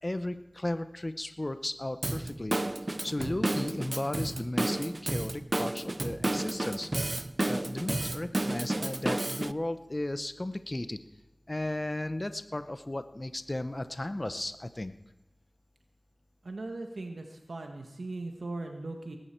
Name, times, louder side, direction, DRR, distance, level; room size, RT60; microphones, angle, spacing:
voice 1, 0.0-2.6 2.8-11.0 11.5-14.9, left 1 dB, 30° left, 10 dB, 0.7 m, -35 dB
Drum kit / Drum, 2.0-9.5, right 1 dB, 35° right, 0.4 m, -32 dB
voice 2, 16.4-19.2, right 2 dB, 80° right, 3 dB, 1.4 m, -39 dB
19.5 x 11.0 x 4.5 m, 1.1 s
wide cardioid pair, 55°, 0 cm